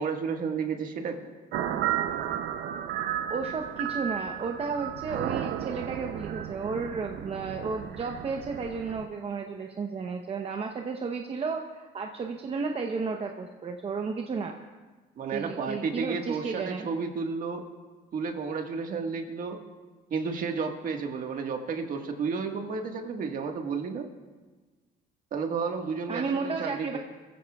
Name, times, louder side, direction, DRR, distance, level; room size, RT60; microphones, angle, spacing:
voice 1, 0.0-1.3 15.2-17.6 18.1-19.6 20.1-24.1 25.3-27.0, right 5 dB, 55° right, 4 dB, 1.6 m, -32 dB
sound 1, 1.5-9.1, right 10 dB, 75° right, 0.7 m, -33 dB
voice 2, 3.3-14.5 15.3-16.9 26.1-27.0, right 4 dB, 35° right, 3 dB, 0.9 m, -33 dB
22.0 x 15.0 x 2.4 m, 1.3 s
cardioid pair, 110°, 17 cm